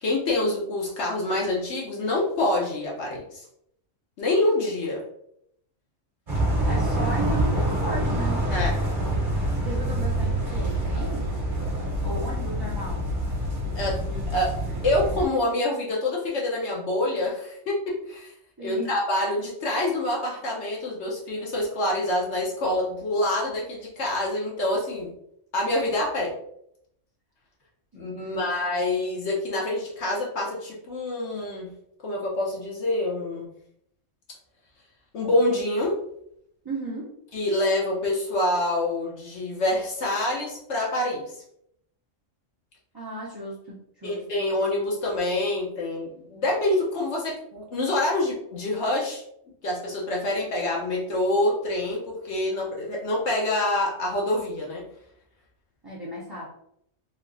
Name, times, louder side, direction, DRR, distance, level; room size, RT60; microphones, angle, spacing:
voice 1, 0.0-3.4 4.2-5.0 8.5-8.8 13.8-14.0 14.3-14.6 14.8-18.3 18.6-25.1 25.5-26.3 27.9-31.7 32.0-33.5 35.1-36.0 37.3-41.3 44.0-49.2 49.6-54.8, left 1 dB, 65° left, -2 dB, 0.9 m, -26 dB
sound 1, 6.3-15.2, right 1 dB, 40° right, 1.2 m, -26 dB
voice 2, 6.6-8.4 9.5-11.3 12.0-13.1 18.6-18.9 27.9-28.5 36.6-37.1 42.9-44.2 55.8-56.5, right 2 dB, 25° right, -7 dB, 0.6 m, -35 dB
3.2 x 2.8 x 2.5 m, 0.73 s
omnidirectional pair, 1.3 m